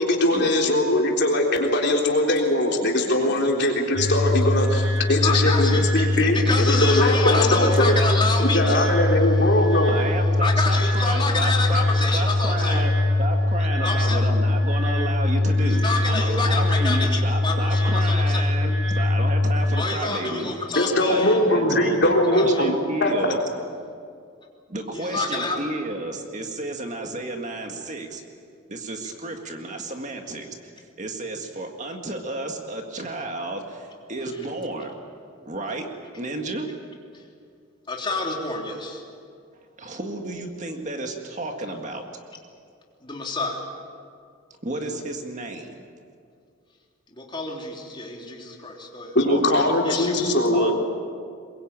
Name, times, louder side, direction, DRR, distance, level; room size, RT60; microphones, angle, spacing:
voice 1, 0.0-7.9 8.4-9.9 20.8-22.7 23.0-23.4 49.1-50.7, left 1 dB, 55° left, 0 dB, 3.7 m, -21 dB
sound 1, 3.9-19.8, left 2 dB, 85° right, 6.1 m, -22 dB
voice 2, 5.2-8.9 10.4-12.8 13.8-14.2 15.7-18.5 19.7-21.4 22.4-22.6 24.9-25.6 37.9-39.0 43.0-43.7 47.1-49.2 49.8-50.3, left 3 dB, 25° left, -1 dB, 3.4 m, -28 dB
voice 3, 9.9-11.9 12.1-12.9 13.2-20.5 21.1-21.2 21.5-23.4 24.7-28.2 28.7-30.5 31.0-34.9 35.4-35.9 36.1-36.7 39.8-42.0 44.6-45.8 49.2-49.6 50.5-50.7, right 2 dB, 35° right, 4 dB, 1.9 m, -31 dB
22.5 x 22.5 x 9.0 m, 2.2 s
head